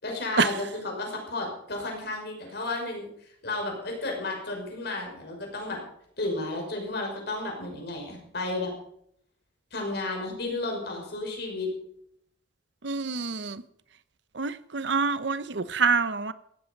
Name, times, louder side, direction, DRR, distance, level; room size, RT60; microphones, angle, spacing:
voice 1, 0.0-5.8 6.2-8.7 9.7-11.7, left 2 dB, 55° left, 5.8 m, -33 dB
voice 2, 12.8-13.6 14.3-16.3, right 4 dB, 65° right, 0.8 m, -26 dB
16.5 x 13.5 x 5.4 m
head